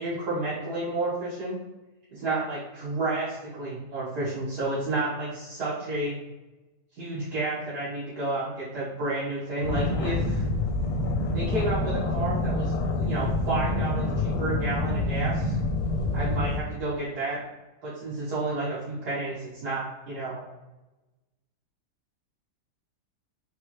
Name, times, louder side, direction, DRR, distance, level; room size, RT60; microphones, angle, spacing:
voice 1, 0.0-1.6 2.1-6.2 7.0-10.4 11.3-15.6 16.1-17.4 17.8-20.4, right 2 dB, 65° right, -11 dB, 1.8 m, -31 dB
sound 1, 9.6-16.6, left 2 dB, 70° left, 1.1 m, -27 dB
4.2 x 3.2 x 3.0 m, 1.1 s
omnidirectional pair, 1.8 m